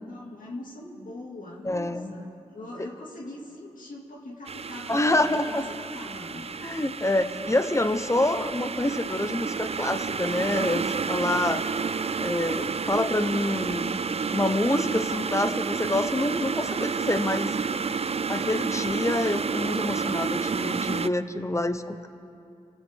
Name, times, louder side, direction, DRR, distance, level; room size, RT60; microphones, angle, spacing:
voice 1, 0.1-6.6, left 1 dB, 80° left, -3 dB, 2.3 m, -41 dB
voice 2, 1.6-2.1 4.9-5.6 6.6-11.6 12.2-13.9 14.3-17.6 18.3-22.1, left 1 dB, 20° left, 10 dB, 0.9 m, -27 dB
sound 1, 4.5-21.1, right 5 dB, 50° right, 0.4 m, -30 dB
25.0 x 15.5 x 3.7 m, 2.6 s
cardioid pair, 50°, 14 cm